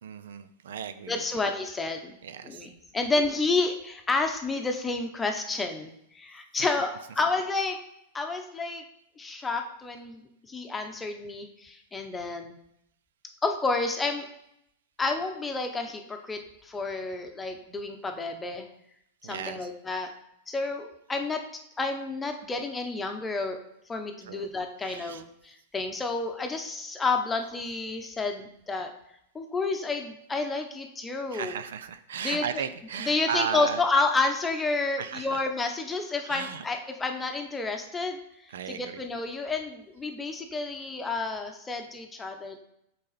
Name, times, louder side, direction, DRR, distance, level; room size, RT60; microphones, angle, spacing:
voice 1, 0.0-1.5 2.2-2.7 6.6-6.7 19.2-19.7 24.3-24.5 24.8-25.2 31.3-33.8 35.0-35.4 36.3-36.6 38.5-39.0, right 8 dB, 80° right, 12 dB, 0.4 m, -35 dB
voice 2, 1.0-2.2 2.4-7.8 8.1-8.8 9.2-12.6 13.4-14.3 15.0-18.7 19.2-20.1 20.5-21.4 21.8-23.6 23.9-28.9 29.3-31.6 32.2-32.7 32.9-42.6, left 3 dB, 15° left, 4 dB, 0.9 m, -30 dB
6.4 x 4.1 x 4.1 m, 0.76 s
hypercardioid pair, 125°, 0 cm